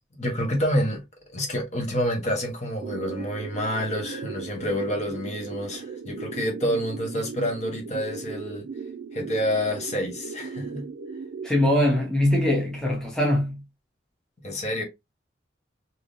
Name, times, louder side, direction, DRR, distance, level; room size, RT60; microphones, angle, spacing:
voice 1, 0.2-1.0 1.3-8.6 9.1-10.9 14.4-14.8, equal, 40° left, 1.0 m, -28 dB
sound 1, 2.8-11.5, right 5 dB, 60° right, 0.3 m, -37 dB
voice 2, 11.4-13.6, left 1 dB, 5° left, 0.8 m, -22 dB
3.4 x 2.7 x 2.5 m
head